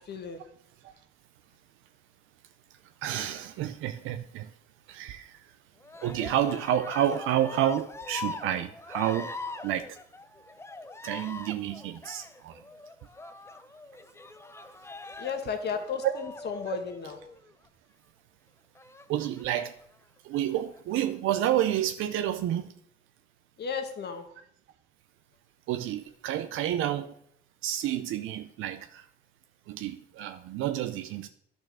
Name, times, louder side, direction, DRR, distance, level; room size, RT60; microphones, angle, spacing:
voice 1, 0.1-0.4 15.2-17.2 23.6-24.2, left 6 dB, 55° left, 6 dB, 1.5 m, -34 dB
voice 2, 3.0-4.5 4.9-5.5 6.0-9.3 9.6-10.0 11.0-12.6 16.0-16.1 16.7-16.8 19.1-19.7 20.2-22.7 25.7-27.1 27.6-29.1 29.7-31.3, right 11 dB, 90° right, 9 dB, 0.5 m, -29 dB
Cheering, 5.8-17.5 18.7-19.6 20.3-21.0, left 3 dB, 15° left, 0.6 m, -42 dB
10.5 x 4.4 x 6.1 m, 0.69 s
cardioid pair, 90°, 20 cm